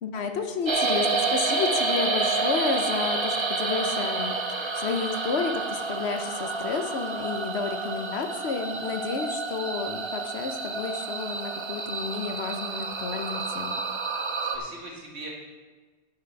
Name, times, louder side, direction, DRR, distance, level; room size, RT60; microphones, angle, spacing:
voice 1, 0.0-13.8, left 5 dB, 70° left, 7 dB, 1.0 m, -31 dB
sound 1, 0.6-14.6, right 3 dB, 30° right, 0.6 m, -29 dB
voice 2, 14.1-15.3, right 2 dB, 70° right, -3 dB, 2.3 m, -42 dB
9.9 x 6.1 x 5.7 m, 1.3 s
omnidirectional pair, 1.2 m